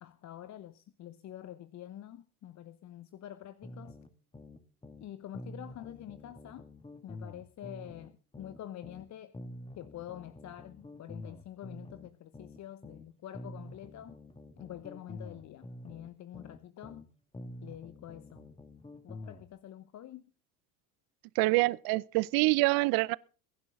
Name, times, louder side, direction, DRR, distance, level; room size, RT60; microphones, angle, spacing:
voice 1, 0.0-4.0 5.0-6.7 7.0-9.3 9.7-14.2 14.6-17.1 17.6-18.5 19.0-20.3, left 12 dB, 40° left, 1.0 m, -47 dB
sound 1, 3.6-5.1 5.3-9.1 9.3-13.1 13.3-17.1 17.3-19.5, left 2 dB, 10° left, 1.9 m, -47 dB
voice 2, 21.4-23.2, right 24 dB, 50° right, 0.7 m, -26 dB
22.5 x 11.0 x 3.7 m
hypercardioid pair, 70°, 45 cm